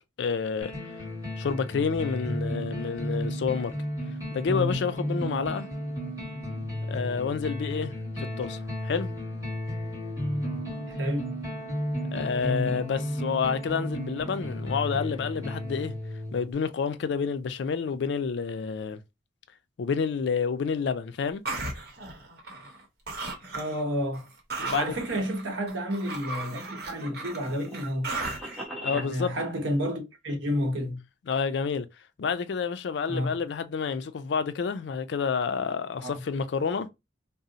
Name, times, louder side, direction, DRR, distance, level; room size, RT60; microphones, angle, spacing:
voice 1, 0.2-0.7 1.4-3.7 4.3-5.7 6.9-7.9 8.4-9.1 12.1-15.9 16.3-19.0 19.8-21.4 24.6-24.8 28.8-29.3 31.3-31.9 32.2-36.9, left 5 dB, 70° left, 0.4 m, -29 dB
sound 1, 0.6-16.5, left 1 dB, 15° right, 1.2 m, -33 dB
voice 2, 10.9-11.3 23.5-24.3 24.6-28.1 28.9-31.0 33.1-33.4 36.0-36.2, equal, 85° right, 0.9 m, -30 dB
sound 2, 21.4-22.8 23.1-23.8 24.1-28.6, right 3 dB, 60° right, 0.9 m, -36 dB
sound 3, 26.4-29.1, equal, ahead, 0.8 m, -40 dB
2.7 x 2.0 x 3.8 m
head